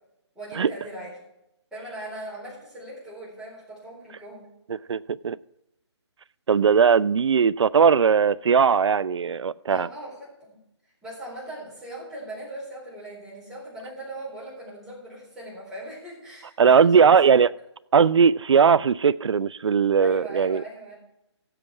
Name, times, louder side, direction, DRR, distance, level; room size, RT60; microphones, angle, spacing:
voice 1, 0.3-1.1 1.7-4.5 9.7-17.2 20.0-21.0, right 1 dB, 5° right, 4.2 m, -39 dB
voice 2, 4.7-5.4 6.5-9.9 16.6-17.5 17.9-20.6, right 6 dB, 70° right, 0.4 m, -19 dB
15.5 x 7.8 x 4.7 m
figure-of-eight pair, 155°, 15 cm